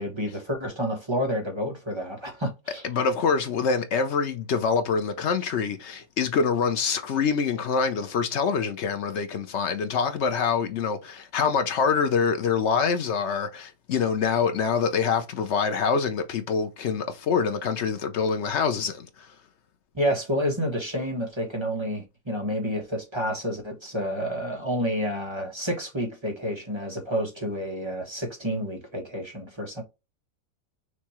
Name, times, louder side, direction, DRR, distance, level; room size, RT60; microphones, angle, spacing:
voice 1, 0.0-2.8 19.9-29.8, equal, 15° right, 1.3 m, -29 dB
voice 2, 2.8-19.3, left 5 dB, 65° left, 0.7 m, -25 dB
6.4 x 2.8 x 3.0 m
omnidirectional pair, 1.9 m